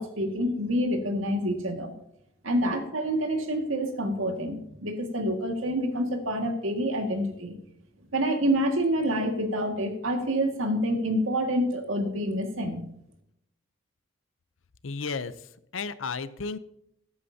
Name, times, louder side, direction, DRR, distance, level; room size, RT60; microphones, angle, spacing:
voice 1, 0.0-1.9 2.4-7.6 8.1-12.8, equal, 80° right, 5 dB, 1.9 m, -27 dB
voice 2, 14.8-15.5 15.7-16.6, left 4 dB, 70° left, 14 dB, 0.7 m, -33 dB
13.5 x 11.0 x 2.8 m, 0.78 s
head